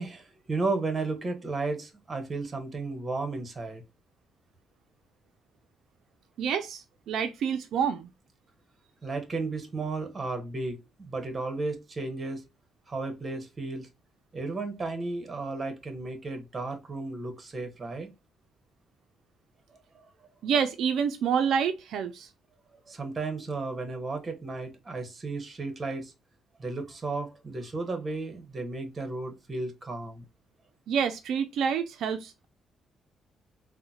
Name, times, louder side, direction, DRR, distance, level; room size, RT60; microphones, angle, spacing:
voice 1, 0.0-3.8 9.0-12.4 12.9-13.9 14.3-18.1 19.9-20.1 22.9-26.1 26.6-30.2, right 3 dB, 30° right, 1.0 m, -34 dB
voice 2, 6.4-8.1 20.4-22.3 30.9-32.4, right 7 dB, 75° right, 0.3 m, -28 dB
3.6 x 2.1 x 2.7 m
cardioid pair, 90°, 0 cm